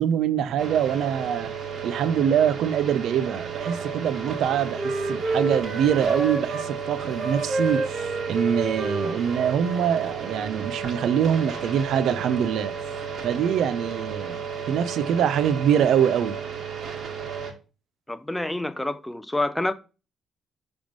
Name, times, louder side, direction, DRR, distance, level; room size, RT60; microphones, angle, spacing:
voice 1, 0.0-1.5 1.8-12.8 13.2-14.4 14.7-16.4, right 9 dB, 75° right, 0.5 m, -24 dB
sound 1, 0.6-17.5, right 6 dB, 50° right, 1.8 m, -33 dB
Wind instrument woodwind instrument, 3.5-6.7 7.1-10.6, right 3 dB, 25° right, 1.3 m, -30 dB
voice 2, 18.1-19.7, left 2 dB, 10° left, 0.5 m, -27 dB
5.9 x 3.5 x 5.1 m
cardioid pair, 90°, 0 cm